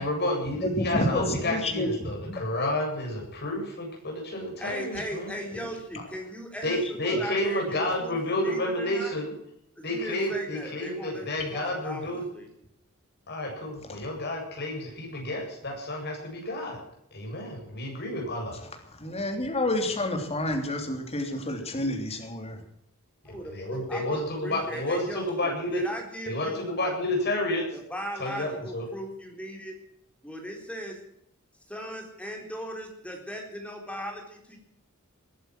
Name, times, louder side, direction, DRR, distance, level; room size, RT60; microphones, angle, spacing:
voice 1, 0.0-5.6 6.6-9.3 9.8-12.3 13.3-16.8 17.1-18.6 23.5-25.8 26.2-27.7 28.2-28.9, left 1 dB, 50° left, 0 dB, 7.8 m, -30 dB
voice 2, 0.6-1.9 2.3-2.4 7.1-7.2 18.9-22.6, left 1 dB, 30° left, 3 dB, 3.3 m, -29 dB
voice 3, 4.6-9.1 9.8-12.5 23.3-23.4 23.7-26.7 27.7-29.7 30.2-31.0 31.7-34.6, equal, 5° left, 2 dB, 3.9 m, -38 dB
20.5 x 11.5 x 6.2 m, 0.73 s
head